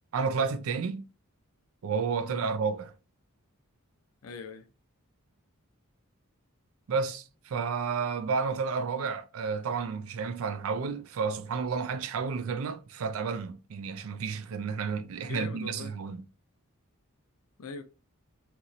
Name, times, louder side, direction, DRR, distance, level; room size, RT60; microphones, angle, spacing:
voice 1, 0.1-1.1 1.8-2.9 6.9-16.2, right 5 dB, 70° right, 0.4 m, -31 dB
voice 2, 4.2-4.7 15.2-15.9 17.6-17.8, left 4 dB, 70° left, 0.5 m, -41 dB
2.9 x 2.7 x 2.5 m
head